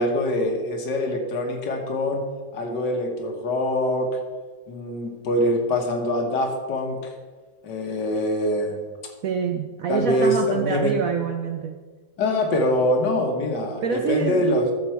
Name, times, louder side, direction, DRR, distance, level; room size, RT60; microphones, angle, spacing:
voice 1, 0.0-2.2 2.5-4.2 4.7-7.1 7.6-8.8 9.9-10.9 12.2-14.7, left 1 dB, 70° left, 3 dB, 1.9 m, -24 dB
voice 2, 9.2-11.8 13.8-14.5, right 7 dB, 70° right, 6 dB, 0.8 m, -26 dB
13.0 x 6.5 x 4.5 m, 1.4 s
omnidirectional pair, 2.0 m